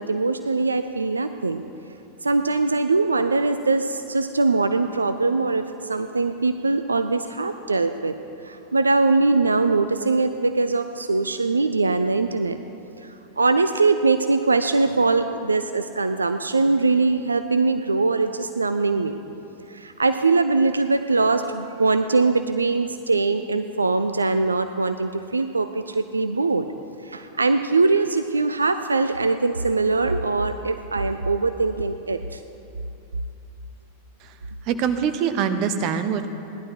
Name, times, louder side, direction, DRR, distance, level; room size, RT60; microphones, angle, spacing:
voice 1, 0.0-1.6 2.2-8.2 8.4-12.6 13.0-19.2 19.7-26.7 27.0-32.4, right 3 dB, 80° right, 9 dB, 0.4 m, -22 dB
voice 2, 34.6-36.3, right 7 dB, 40° right, 10 dB, 0.9 m, -24 dB
16.5 x 11.5 x 4.8 m, 2.8 s
figure-of-eight pair, 90°, 0 cm